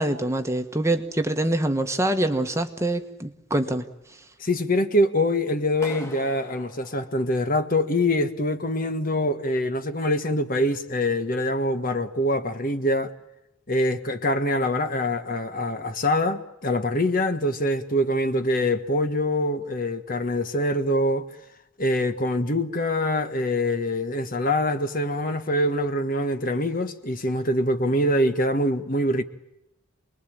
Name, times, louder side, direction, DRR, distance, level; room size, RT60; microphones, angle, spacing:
voice 1, 0.0-3.9, right 1 dB, 15° right, 1.4 m, -25 dB
voice 2, 4.4-13.1 13.7-21.2 21.8-29.2, left 1 dB, 40° left, 1.5 m, -24 dB
Clapping, 5.8-7.9, left 1 dB, 15° left, 2.2 m, -42 dB
29.0 x 21.5 x 8.9 m
head